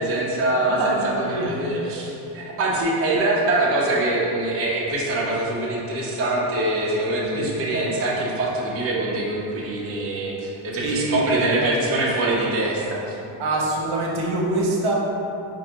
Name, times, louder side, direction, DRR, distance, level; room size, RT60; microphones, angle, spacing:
voice 1, 0.0-13.2, right 2 dB, 30° right, -5 dB, 0.6 m, -24 dB
voice 2, 0.7-1.6 7.3-7.6 10.7-11.2 11.6-11.7 13.4-14.9, right 2 dB, 70° right, -3 dB, 0.9 m, -25 dB
4.6 x 2.6 x 2.8 m, 2.8 s
cardioid pair, 120°, 50 cm